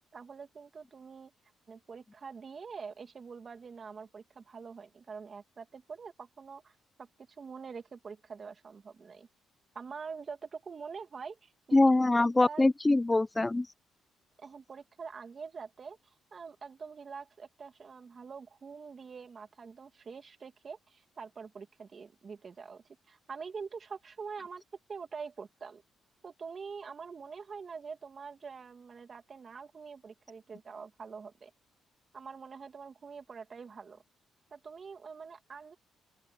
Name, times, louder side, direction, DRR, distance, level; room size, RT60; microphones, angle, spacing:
voice 1, 0.1-1.3 1.7-7.1 7.4-9.3 9.7-12.7 14.4-16.0 16.3-24.6 24.9-25.8 26.2-31.5 32.1-34.0 34.5-35.8, right 5 dB, 40° right, 2.7 m, -45 dB
voice 2, 11.7-13.7, left 2 dB, 15° left, 0.8 m, -24 dB
open air
cardioid pair, 90°, 0 cm